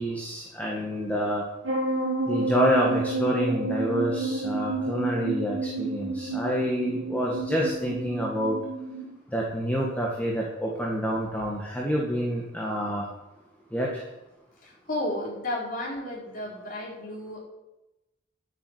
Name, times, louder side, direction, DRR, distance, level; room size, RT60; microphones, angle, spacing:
voice 1, 0.0-1.5 2.3-8.6 9.3-13.1 13.7-14.0, equal, 10° left, -2 dB, 1.9 m, -27 dB
sound 1, 1.6-9.1, right 2 dB, 85° right, 1.9 m, -30 dB
voice 2, 14.6-17.4, left 1 dB, 45° left, -3 dB, 4.7 m, -33 dB
11.0 x 8.8 x 8.1 m, 0.96 s
head